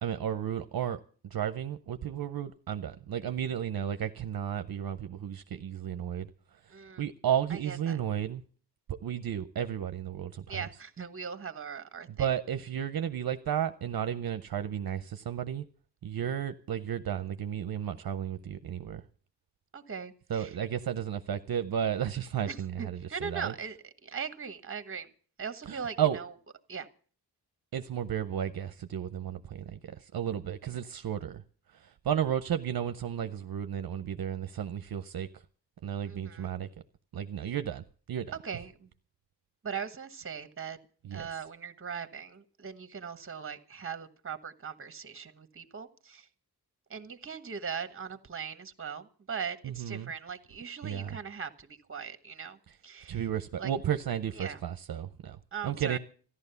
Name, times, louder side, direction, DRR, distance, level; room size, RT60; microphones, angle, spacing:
voice 1, 0.0-1.0 1.3-6.3 6.6-8.4 8.9-10.6 12.2-15.6 16.0-19.0 20.3-23.5 25.7-26.2 27.7-31.4 31.7-35.4 35.8-36.7 37.1-38.3 41.0-41.3 49.6-50.1 50.8-51.2 53.1-55.4 55.6-56.0, right 9 dB, 60° right, 0.7 m, -33 dB
voice 2, 6.7-7.0 7.5-8.0 10.5-12.3 19.7-20.5 22.5-25.1 25.4-26.3 26.7-26.9 36.0-36.5 38.4-38.9 39.6-40.8 41.1-46.3 46.9-53.2 53.6-53.7 54.4-54.6 55.5-56.0, right 6 dB, 30° right, 1.2 m, -40 dB
14.5 x 11.5 x 6.8 m
wide cardioid pair, 140°, 40 cm